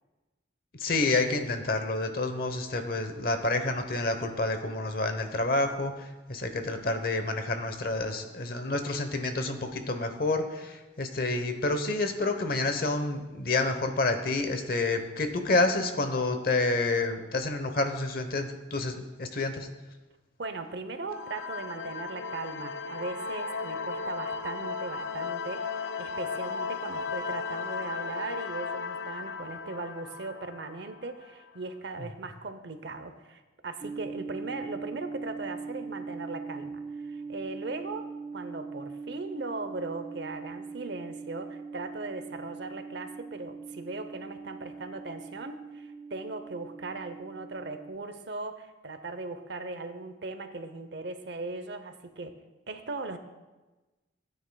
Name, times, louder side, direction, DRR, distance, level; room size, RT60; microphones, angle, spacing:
voice 1, 0.7-19.7, left 2 dB, 50° left, 7 dB, 0.9 m, -29 dB
voice 2, 20.4-38.1 38.3-52.3 52.7-53.2, right 3 dB, 65° right, 9 dB, 0.8 m, -38 dB
sound 1, 21.1-31.5, left 4 dB, 70° left, 0.5 m, -35 dB
sound 2, 33.8-48.0, right 4 dB, 25° right, 0.3 m, -41 dB
16.5 x 9.2 x 2.3 m, 1.2 s
head